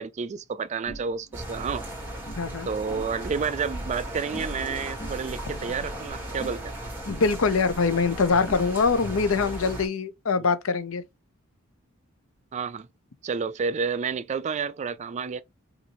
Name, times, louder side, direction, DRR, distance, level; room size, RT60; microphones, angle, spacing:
voice 1, 0.0-1.8 2.6-6.7 12.5-12.9 13.2-15.4, right 5 dB, 35° right, 0.3 m, -30 dB
sound 1, 0.9-2.5 2.8-3.5 3.7-4.7 5.0-6.8 7.1-9.2, right 1 dB, 40° left, 1.0 m, -44 dB
sound 2, 1.3-9.9, right 1 dB, 10° right, 1.7 m, -36 dB
voice 2, 2.4-2.7 7.1-11.0, left 4 dB, 75° left, 0.7 m, -24 dB
5.3 x 2.6 x 3.0 m
head